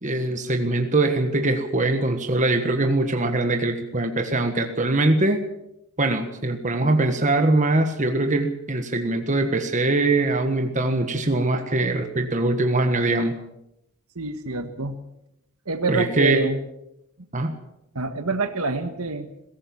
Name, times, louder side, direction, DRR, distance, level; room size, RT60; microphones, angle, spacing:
voice 1, 0.0-5.4 6.0-13.3 15.9-16.4 17.3-17.5, right 2 dB, 35° right, 5 dB, 1.5 m, -22 dB
voice 2, 14.1-15.0 15.6-16.6 17.9-19.3, right 3 dB, 75° right, 8 dB, 1.5 m, -26 dB
21.0 x 17.5 x 7.2 m, 0.83 s
head